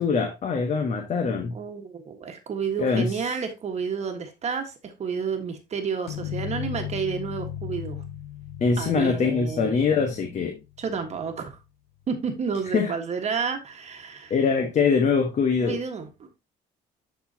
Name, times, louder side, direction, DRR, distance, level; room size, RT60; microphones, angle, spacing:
voice 1, 0.0-1.6 2.8-3.3 8.6-10.6 12.7-12.9 14.3-15.8, left 5 dB, 45° left, 1.2 m, -23 dB
voice 2, 1.5-8.0 8.8-9.8 10.8-11.6 12.1-14.3 15.6-16.4, right 6 dB, 40° right, 1.4 m, -31 dB
sound 1, 6.1-11.6, left 11 dB, 85° left, 0.6 m, -37 dB
11.0 x 4.3 x 2.8 m
cardioid pair, 110°, 17 cm